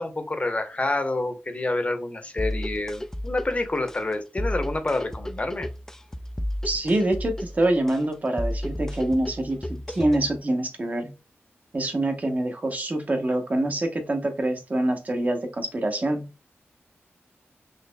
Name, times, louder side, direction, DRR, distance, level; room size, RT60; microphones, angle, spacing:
voice 1, 0.0-5.7, left 2 dB, 30° left, 7 dB, 0.8 m, -28 dB
sound 1, 2.4-10.4, left 1 dB, 10° left, 0.3 m, -33 dB
voice 2, 6.6-11.1 11.7-16.3, right 1 dB, 35° right, 6 dB, 0.9 m, -25 dB
4.1 x 3.0 x 2.2 m, 0.30 s
wide cardioid pair, 80°, 5 cm